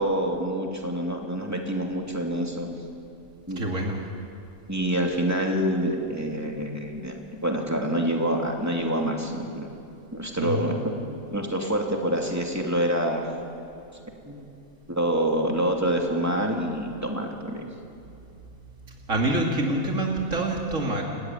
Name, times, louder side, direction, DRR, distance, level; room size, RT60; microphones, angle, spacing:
voice 1, 0.0-2.7 3.5-3.8 4.7-7.1 7.4-9.7 10.1-10.7 11.0-13.3 14.2-14.5 14.9-17.7, right 1 dB, 10° right, 1 dB, 2.8 m, -26 dB
voice 2, 3.6-4.0 10.4-10.8 18.6-21.0, right 1 dB, 75° right, 0 dB, 2.6 m, -27 dB
30.0 x 15.5 x 9.5 m, 2.7 s
omnidirectional pair, 1.4 m